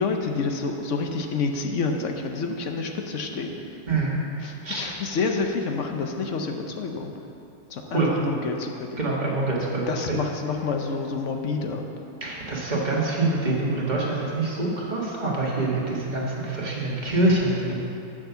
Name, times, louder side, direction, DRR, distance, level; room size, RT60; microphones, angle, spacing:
voice 1, 0.0-3.6 4.4-7.1 7.7-9.0 9.9-11.8, left 4 dB, 60° left, 3 dB, 0.9 m, -28 dB
voice 2, 3.9-4.2 4.6-4.9 7.9-8.1 9.0-10.2 12.2-17.8, right 2 dB, 30° right, -4 dB, 1.5 m, -25 dB
7.5 x 6.4 x 6.8 m, 2.7 s
omnidirectional pair, 1.7 m